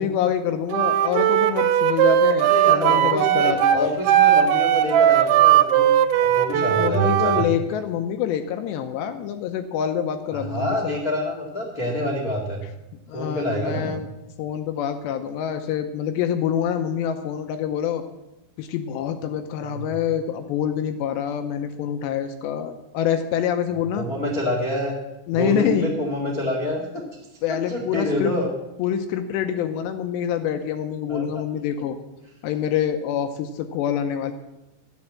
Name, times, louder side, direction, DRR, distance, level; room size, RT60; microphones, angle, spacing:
voice 1, 0.0-3.9 6.5-11.0 13.1-14.1 14.4-18.0 18.6-24.1 25.3-25.9 27.4-28.3 28.8-32.0 32.4-34.3, left 9 dB, 80° left, 7 dB, 2.8 m, -26 dB
Wind instrument woodwind instrument, 0.7-7.5, right 11 dB, 85° right, 3.1 m, -18 dB
voice 2, 2.4-5.9 6.2-7.4 10.3-12.6 13.1-13.9 19.6-19.9 23.9-24.9 25.3-27.0 27.7-28.5 31.1-31.3 31.8-31.9, equal, 50° left, -1 dB, 1.1 m, -27 dB
12.5 x 10.5 x 7.4 m, 0.97 s
omnidirectional pair, 5.4 m